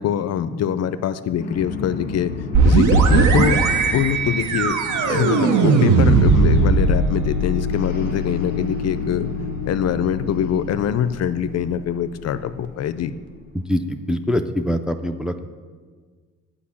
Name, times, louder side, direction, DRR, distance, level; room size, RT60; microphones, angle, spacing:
voice 1, 0.0-2.3 2.6-3.6 3.9-4.8 5.1-9.3 9.7-13.1, left 9 dB, 55° left, 13 dB, 0.5 m, -23 dB
sound 1, 1.4-13.9, left 4 dB, 35° left, 1.4 m, -32 dB
sound 2, 2.5-12.1, right 3 dB, 75° right, 0.9 m, -20 dB
voice 2, 13.6-15.3, equal, 5° right, 6 dB, 0.4 m, -23 dB
8.4 x 5.1 x 7.2 m, 1.5 s
cardioid pair, 90°, 30 cm